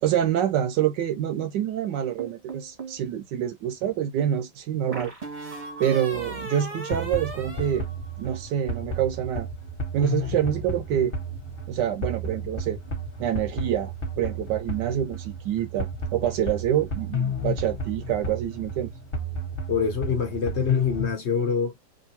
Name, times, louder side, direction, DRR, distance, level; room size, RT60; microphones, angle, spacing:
voice 1, 0.0-5.1 5.8-7.8 8.2-9.5 9.9-11.1 11.7-12.8 13.2-18.9, right 10 dB, 75° right, 1.2 m, -26 dB
sound 1, 2.2-3.0 4.9-8.5, right 3 dB, 25° right, 0.8 m, -38 dB
sound 2, 6.9-21.1, equal, 35° left, 1.1 m, -32 dB
voice 2, 19.7-21.7, left 6 dB, 65° left, 0.7 m, -25 dB
3.2 x 2.6 x 2.7 m
omnidirectional pair, 2.0 m